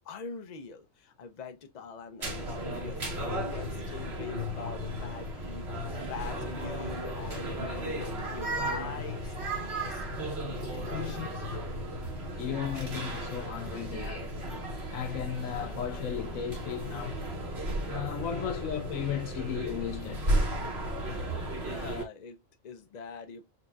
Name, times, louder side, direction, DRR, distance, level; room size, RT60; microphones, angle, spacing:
voice 1, 0.0-9.3 9.8-10.0 10.5-11.4 18.5-18.6 21.2-21.3 21.6-23.5, left 5 dB, 45° left, 0.6 m, -44 dB
sound 1, 2.2-22.0, right 1 dB, 55° right, 1.6 m, -34 dB
voice 2, 10.9-11.3 12.4-14.3 14.9-17.2 17.8-20.5, left 9 dB, 90° left, 1.2 m, -35 dB
5.2 x 2.7 x 2.3 m
omnidirectional pair, 1.3 m